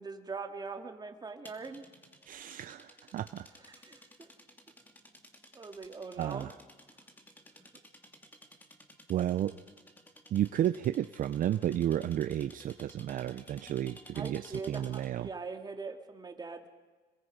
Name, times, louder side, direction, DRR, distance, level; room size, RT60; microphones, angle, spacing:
voice 1, 0.0-1.9 2.4-2.6 3.6-4.3 5.5-6.5 14.1-16.7, right 4 dB, 25° right, 5 dB, 2.2 m, -42 dB
sound 1, 1.4-15.2, equal, 10° left, 2.6 m, -56 dB
voice 2, 2.3-3.5 6.2-6.5 9.1-9.5 10.3-15.3, right 11 dB, 55° right, 11 dB, 0.7 m, -32 dB
27.0 x 21.5 x 5.3 m, 1.4 s
cardioid pair, 110°, 17 cm